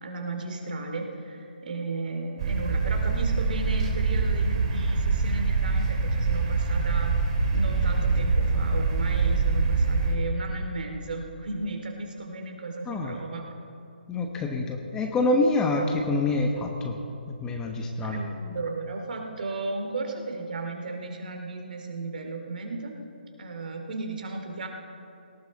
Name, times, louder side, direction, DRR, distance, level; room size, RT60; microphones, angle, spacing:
voice 1, 0.0-7.1 7.5-13.4 18.0-23.0 23.4-24.7, right 3 dB, 55° right, 3 dB, 2.7 m, -35 dB
sound 1, 2.4-10.1, right 4 dB, 35° right, 2.6 m, -24 dB
voice 2, 14.1-17.0 17.3-18.2, left 2 dB, 10° left, 2 dB, 1.1 m, -26 dB
18.5 x 18.0 x 4.2 m, 2.6 s
figure-of-eight pair, 145°, 6 cm